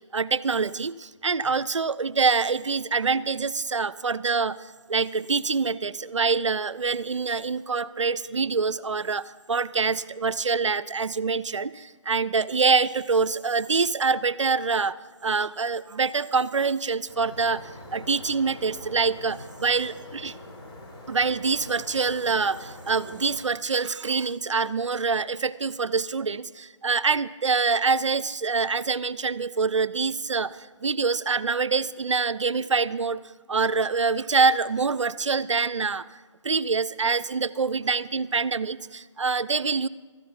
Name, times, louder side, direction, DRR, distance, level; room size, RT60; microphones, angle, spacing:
voice 1, 0.1-0.9 1.2-4.6 4.9-11.7 12.1-14.9 15.2-17.6 17.9-20.3 21.1-30.5 30.8-33.2 33.5-36.0 36.4-39.9, right 4 dB, 65° right, 15 dB, 0.4 m, -25 dB
sound 1, 17.1-23.4, left 2 dB, 45° left, 4.3 m, -44 dB
21.0 x 14.0 x 2.9 m, 1.4 s
figure-of-eight pair, 145°, 17 cm